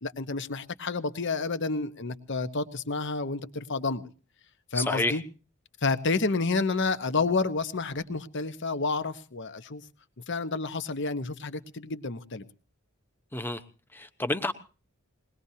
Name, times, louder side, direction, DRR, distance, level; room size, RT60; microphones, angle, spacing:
voice 1, 0.0-4.0 4.7-5.2 5.8-9.8 10.3-12.4, left 3 dB, 55° left, 12 dB, 1.0 m, -30 dB
voice 2, 4.7-5.2 13.3-13.6 13.9-14.5, left 2 dB, 10° left, 10 dB, 1.0 m, -29 dB
22.0 x 19.5 x 2.8 m, 0.37 s
head